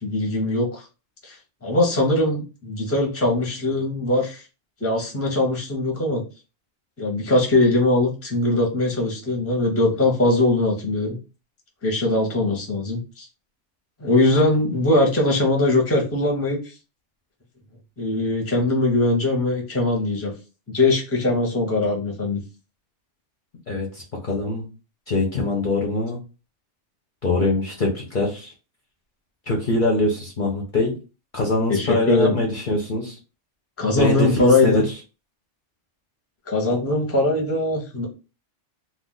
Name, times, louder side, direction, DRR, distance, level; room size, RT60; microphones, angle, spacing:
voice 1, 0.0-0.8 1.2-1.4 1.6-4.4 4.8-6.2 7.0-11.2 11.8-13.3 14.0-16.6 18.0-20.3 20.7-22.4 31.7-32.3 33.8-34.8 36.5-38.1, left 2 dB, 15° left, 0 dB, 0.7 m, -21 dB
voice 2, 23.7-24.7 25.1-26.2 27.2-28.5 29.5-30.9 31.3-33.2 34.0-34.8, left 2 dB, 50° left, -1 dB, 0.7 m, -23 dB
2.4 x 2.2 x 3.7 m, 0.32 s
omnidirectional pair, 1.2 m